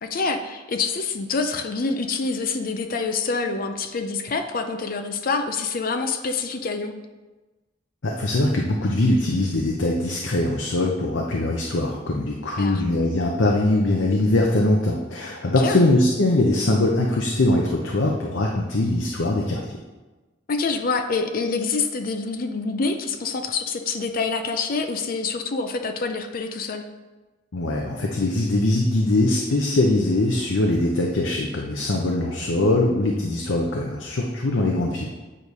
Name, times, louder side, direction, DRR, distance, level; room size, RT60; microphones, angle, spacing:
voice 1, 0.0-7.0 12.6-12.8 15.5-15.8 20.5-26.8, left 4 dB, 50° left, 6 dB, 0.5 m, -26 dB
voice 2, 8.0-19.8 27.5-35.1, left 2 dB, 85° left, 0 dB, 0.7 m, -22 dB
8.7 x 3.2 x 5.4 m, 1.2 s
head